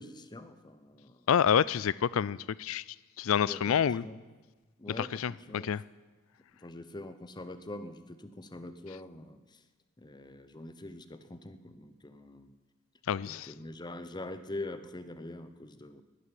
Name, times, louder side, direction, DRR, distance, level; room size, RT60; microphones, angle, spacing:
voice 1, 0.0-1.2 3.4-4.2 4.8-5.7 6.6-9.6 10.0-12.5 13.2-16.0, left 2 dB, 20° left, 11 dB, 0.8 m, -44 dB
voice 2, 1.3-2.8 3.2-4.0 5.0-5.8 13.1-13.5, left 8 dB, 70° left, 21 dB, 0.4 m, -28 dB
11.5 x 11.0 x 9.9 m, 1.3 s
head